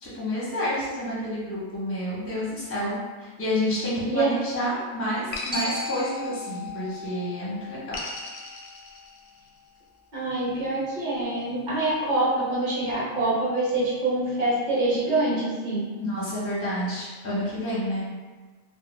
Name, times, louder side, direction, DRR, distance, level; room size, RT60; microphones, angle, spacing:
voice 1, 0.0-2.9 3.2-7.9 16.0-18.1, equal, 15° left, -7 dB, 0.5 m, -29 dB
sound 1, 3.8-4.6 5.3-7.0 7.9-9.6, left 3 dB, 65° left, 0.7 m, -39 dB
Glockenspiel, 5.5-9.6, left 2 dB, 75° right, 0.3 m, -37 dB
voice 2, 10.1-15.8, right 2 dB, 40° right, -7 dB, 0.8 m, -25 dB
2.4 x 2.1 x 3.1 m, 1.3 s
omnidirectional pair, 1.4 m